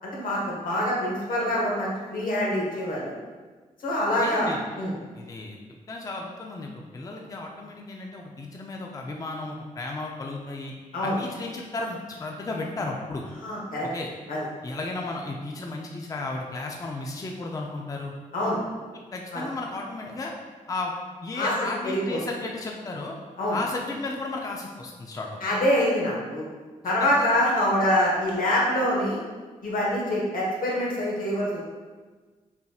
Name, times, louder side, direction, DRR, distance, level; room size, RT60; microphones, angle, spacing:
voice 1, 0.0-3.1 3.8-4.5 4.8-4.9 10.9-11.2 13.4-13.9 14.3-14.4 18.3-18.6 19.3-19.4 21.3-21.5 21.8-22.0 23.4-23.6 25.4-26.4 26.8-29.2 29.6-31.6, left 1 dB, 80° left, -4 dB, 1.2 m, -25 dB
voice 2, 4.2-4.6 5.1-5.6 5.9-10.7 11.0-13.2 13.8-14.1 14.6-18.1 18.9-20.3 20.7-20.9 21.2-23.2 23.5-25.4 27.0-27.1, left 2 dB, 25° left, 0 dB, 0.4 m, -34 dB
5.5 x 2.8 x 2.3 m, 1.4 s
cardioid pair, 90°, 14 cm